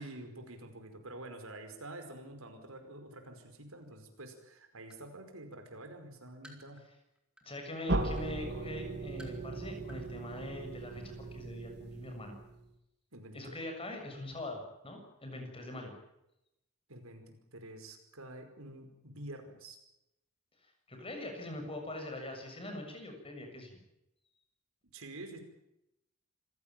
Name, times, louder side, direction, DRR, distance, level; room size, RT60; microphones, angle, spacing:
voice 1, 0.0-6.8 13.1-13.6 16.9-19.8 24.9-25.4, right 1 dB, 85° right, 6 dB, 5.1 m, -48 dB
sound 1, 3.8-3.9 4.4-5.1 5.6-7.6 8.2-8.3 8.9-9.5 9.8-10.1 10.3-10.4, right 1 dB, 5° right, 4.1 m, -57 dB
voice 2, 7.4-12.4 13.3-16.0 20.6-23.8, left 1 dB, 25° left, 4 dB, 6.9 m, -43 dB
sound 2, 7.9-12.7, right 2 dB, 55° right, 2.8 m, -38 dB
27.0 x 17.0 x 9.1 m, 0.86 s
head